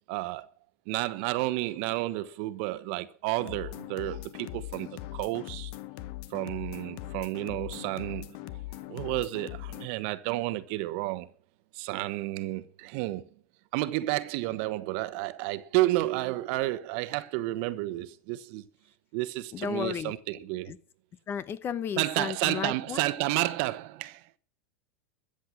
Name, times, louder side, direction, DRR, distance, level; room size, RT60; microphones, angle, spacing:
voice 1, 0.1-0.5 0.9-5.7 6.3-8.4 8.9-11.3 11.7-13.3 13.7-18.6 19.1-20.8 22.0-24.3, right 17 dB, 60° right, 1.2 m, -31 dB
sound 1, 3.4-9.9, left 17 dB, 60° left, 0.9 m, -41 dB
voice 2, 19.5-20.1 20.7-20.8 21.3-23.0, left 8 dB, 30° left, 0.9 m, -33 dB
14.0 x 8.1 x 7.5 m
supercardioid pair, 115°, 7 cm